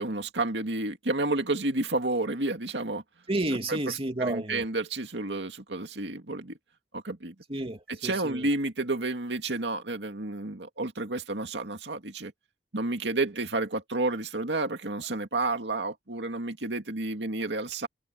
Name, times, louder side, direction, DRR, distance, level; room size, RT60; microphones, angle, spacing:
voice 1, 0.0-3.0 3.7-3.8 4.2-6.6 6.9-7.3 7.9-12.3 12.7-17.9, right 2 dB, 80° right, 2.3 m, -30 dB
voice 2, 3.3-4.6 7.5-8.5, right 2 dB, 35° right, 2.6 m, -31 dB
head